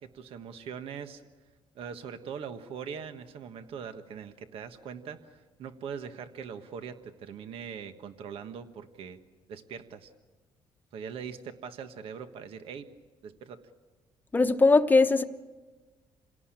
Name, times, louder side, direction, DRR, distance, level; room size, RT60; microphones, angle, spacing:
voice 1, 0.0-1.2 1.7-9.2 9.5-10.1 10.9-12.9 13.2-13.6, right 7 dB, 70° right, 1.4 m, -41 dB
voice 2, 14.3-15.2, left 3 dB, 20° left, 1.0 m, -20 dB
28.0 x 17.5 x 8.9 m
cardioid pair, 125°, 10 cm